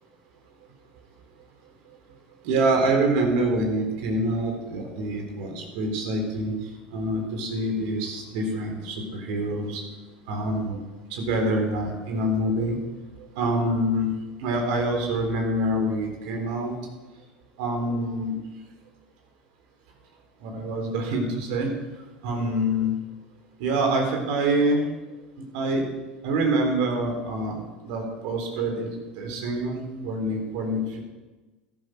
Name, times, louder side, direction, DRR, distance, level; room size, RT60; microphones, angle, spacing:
voice 1, 2.4-6.5 6.9-9.8 10.3-10.8 11.1-12.8 13.4-14.1 14.4-16.7 17.6-18.3 20.4-21.7 22.2-22.9 23.6-24.9 25.5-25.8 26.2-31.0, right 1 dB, 65° right, 2 dB, 3.9 m, -26 dB
13.0 x 12.0 x 5.2 m, 1.2 s
hypercardioid pair, 80°, 5 cm